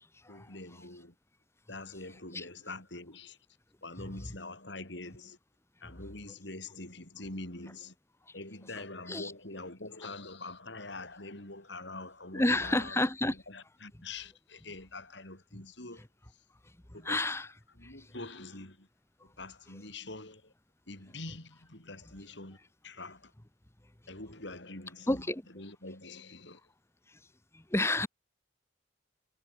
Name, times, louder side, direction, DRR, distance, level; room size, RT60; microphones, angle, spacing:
voice 1, 0.3-1.1 1.7-3.4 3.8-5.4 5.8-7.9 8.3-16.0 16.9-17.3 17.8-18.9 19.2-20.5 20.9-22.6 22.8-23.3 24.1-25.2 25.5-26.6, left 2 dB, 60° left, 5.5 m, -45 dB
voice 2, 12.3-13.4 17.0-17.5 17.8-17.9 25.1-25.4 27.5-28.1, left 1 dB, 15° left, 1.1 m, -30 dB
head